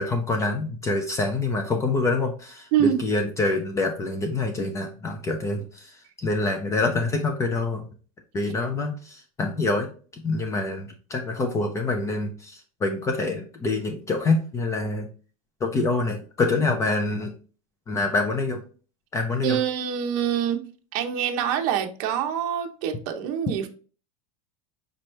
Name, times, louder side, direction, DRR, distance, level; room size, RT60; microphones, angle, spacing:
voice 1, 0.0-5.9 6.2-7.8 8.3-15.1 15.6-17.3 17.9-18.6 19.1-19.6, left 3 dB, 15° left, 0.5 m, -26 dB
voice 2, 2.7-3.0 19.4-20.6 20.9-23.7, right 9 dB, 50° right, 0.7 m, -25 dB
5.2 x 3.0 x 3.2 m
supercardioid pair, 155°, 18 cm